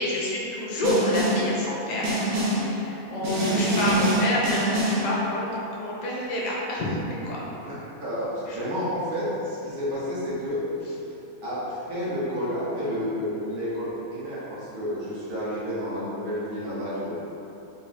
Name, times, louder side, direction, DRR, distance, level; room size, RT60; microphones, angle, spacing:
voice 1, 0.0-2.2 2.4-7.0 7.2-7.4 8.5-8.6, left 1 dB, 55° left, -6 dB, 0.4 m, -28 dB
Snare drum, 0.8-1.5 2.0-2.7 3.2-5.1, right 1 dB, 70° right, 1.2 m, -25 dB
voice 2, 3.1-3.7 7.4-8.3 8.5-10.6 11.4-17.1, equal, 40° right, -10 dB, 1.1 m, -30 dB
3.8 x 2.2 x 4.1 m, 2.9 s
omnidirectional pair, 1.5 m